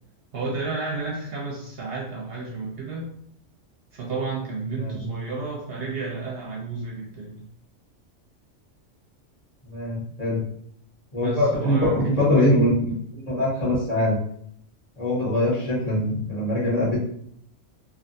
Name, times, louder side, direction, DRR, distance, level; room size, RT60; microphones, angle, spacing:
voice 1, 0.3-3.1 3.9-7.4 11.2-12.1 12.4-12.6, right 3 dB, 60° right, -2 dB, 0.8 m, -31 dB
voice 2, 9.7-10.4 11.1-14.2 15.0-17.0, left 1 dB, 35° left, -7 dB, 1.3 m, -23 dB
3.4 x 2.2 x 2.6 m, 0.65 s
omnidirectional pair, 1.2 m